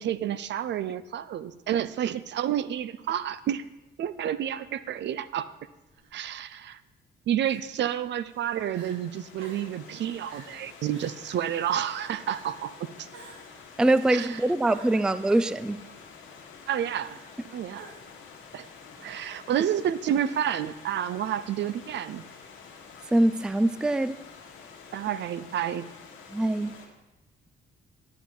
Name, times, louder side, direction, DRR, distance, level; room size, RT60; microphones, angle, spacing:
voice 1, 0.0-3.6 4.0-5.5 6.1-6.8 7.3-12.7 13.0-13.1 14.1-14.4 16.7-17.2 17.5-17.9 18.5-18.7 19.0-22.2 24.9-25.9, right 10 dB, 65° right, 15 dB, 0.5 m, -30 dB
Crying sobbing, 5.9-6.2 7.4-8.0 8.4-8.5 8.7-9.0 9.4-9.8 10.3-10.6 10.9-11.4 12.3-12.7 13.1-13.6 14.7-15.5 17.0-17.4 17.7-18.3, right 4 dB, 85° right, 1.5 m, -50 dB
Stream / Liquid, 7.9-26.9, left 5 dB, 85° left, 1.6 m, -49 dB
voice 2, 13.8-15.8 23.1-24.2 26.3-26.7, right 1 dB, 5° right, 14 dB, 0.3 m, -23 dB
10.5 x 8.1 x 4.7 m, 1.0 s
cardioid pair, 90°, 20 cm